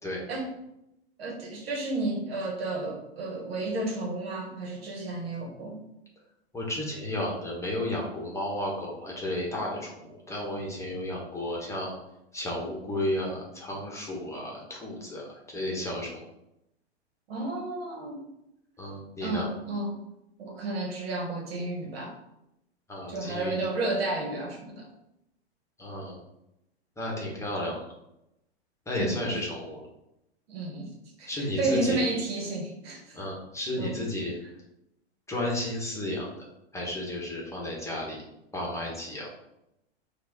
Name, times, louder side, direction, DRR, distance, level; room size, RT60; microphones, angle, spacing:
voice 1, 1.2-5.8 17.3-18.2 19.2-20.0 20.4-22.1 23.1-24.9 29.0-29.4 30.5-30.9 31.2-33.2 33.8-33.9, right 2 dB, 65° right, 0 dB, 1.6 m, -32 dB
voice 2, 6.5-11.9 12.3-16.2 18.8-19.5 22.9-23.6 25.8-26.2 27.0-27.8 28.9-29.9 31.3-32.0 33.1-34.3 35.3-36.3 36.7-38.2 38.5-39.3, left 1 dB, 10° left, -3 dB, 1.2 m, -33 dB
4.6 x 2.7 x 4.1 m, 0.84 s
hypercardioid pair, 105°, 33 cm